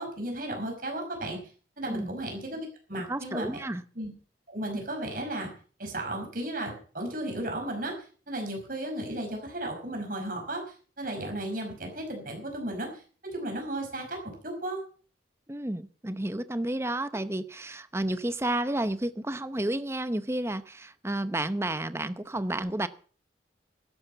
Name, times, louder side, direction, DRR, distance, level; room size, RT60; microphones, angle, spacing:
voice 1, 0.0-1.4 1.8-3.6 4.0-4.1 4.5-5.5 5.8-7.9 8.3-10.6 11.0-14.8, right 1 dB, 50° right, 2 dB, 5.4 m, -34 dB
voice 2, 2.9-3.8 15.5-22.9, right 1 dB, 15° right, 13 dB, 0.7 m, -31 dB
12.5 x 11.5 x 6.9 m, 0.42 s
head